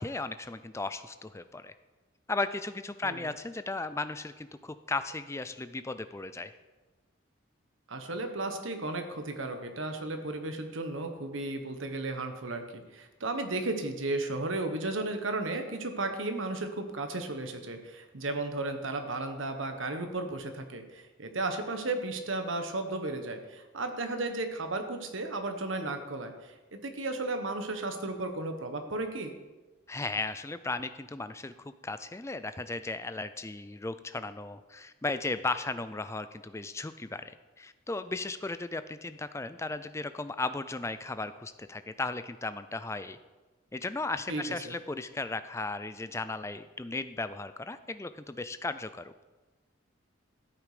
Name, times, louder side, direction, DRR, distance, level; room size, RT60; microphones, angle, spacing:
voice 1, 0.0-1.7 2.3-6.5 29.9-43.2 43.7-49.2, left 3 dB, 15° left, 12 dB, 0.4 m, -36 dB
voice 2, 7.9-29.3 44.3-44.7, right 2 dB, 75° right, 6 dB, 1.3 m, -34 dB
13.0 x 8.5 x 5.0 m, 1.2 s
head